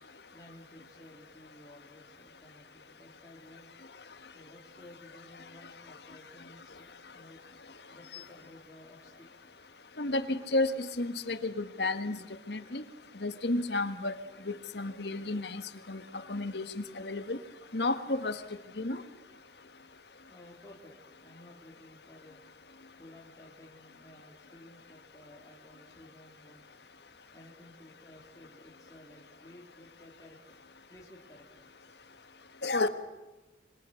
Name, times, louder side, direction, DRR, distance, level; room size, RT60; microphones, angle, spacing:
voice 1, 0.3-3.7 4.3-7.5 7.9-9.3 20.3-22.4 23.0-26.6 27.3-30.6 30.9-31.6, left 1 dB, 20° left, -4 dB, 3.4 m, -55 dB
voice 2, 10.0-12.2 12.5-12.8 13.2-14.1 14.5-15.6 15.9-16.0 16.3-17.4 17.7-18.4 18.8-19.0 32.6-32.9, left 2 dB, 70° left, 10 dB, 1.6 m, -31 dB
27.5 x 24.0 x 6.5 m, 1.1 s
head